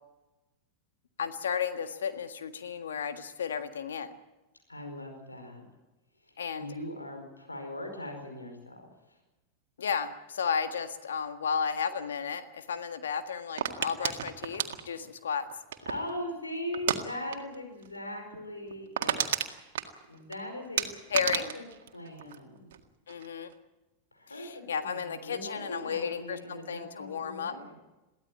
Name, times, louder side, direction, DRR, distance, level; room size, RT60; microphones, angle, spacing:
voice 1, 1.2-4.1 6.4-6.7 9.8-15.5 21.1-21.5 23.1-23.5 24.3-27.5, left 7 dB, 70° left, 8 dB, 1.6 m, -33 dB
voice 2, 4.7-5.7 6.2-8.8 9.1-9.2 15.8-19.6 20.1-21.6 21.9-22.7 24.1-27.7, left 1 dB, 85° left, 3 dB, 5.0 m, -40 dB
sound 1, 13.6-16.1 16.7-17.0 17.3-17.6 17.8-17.9 18.3-18.4 18.7-20.4 20.8-22.8 23.1-23.5, right 10 dB, 60° right, 1.9 m, -32 dB
23.0 x 16.0 x 8.9 m, 1.0 s
figure-of-eight pair, 90°, 0 cm